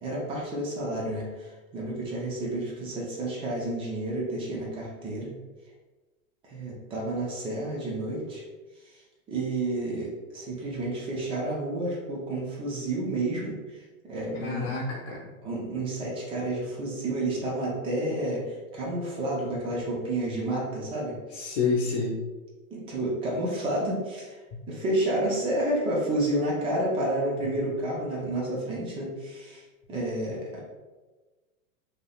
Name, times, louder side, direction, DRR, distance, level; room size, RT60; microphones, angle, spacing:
voice 1, 0.0-5.3 6.5-8.4 9.3-13.8 14.1-14.7 15.4-21.5 22.7-24.4 24.7-29.6 29.9-30.6, right 1 dB, 15° right, -3 dB, 0.3 m, -30 dB
voice 2, 14.4-15.2 21.3-22.2 24.5-24.6 27.4-27.5, left 4 dB, 55° left, -4 dB, 0.8 m, -28 dB
3.1 x 2.6 x 2.3 m, 1.2 s
hypercardioid pair, 125°, 41 cm